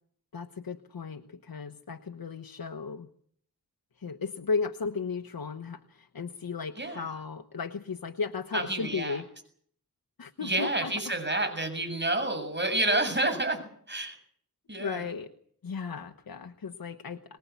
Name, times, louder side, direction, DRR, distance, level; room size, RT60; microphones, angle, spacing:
voice 1, 0.3-3.1 4.0-9.3 10.2-10.9 14.8-15.3 15.6-17.4, left 5 dB, 75° left, 7 dB, 1.3 m, -35 dB
voice 2, 8.5-9.2 10.4-13.6 13.9-14.2 14.7-15.0, right 2 dB, 30° right, 7 dB, 7.2 m, -29 dB
23.5 x 20.5 x 8.3 m, 0.62 s
wide cardioid pair, 70°, 35 cm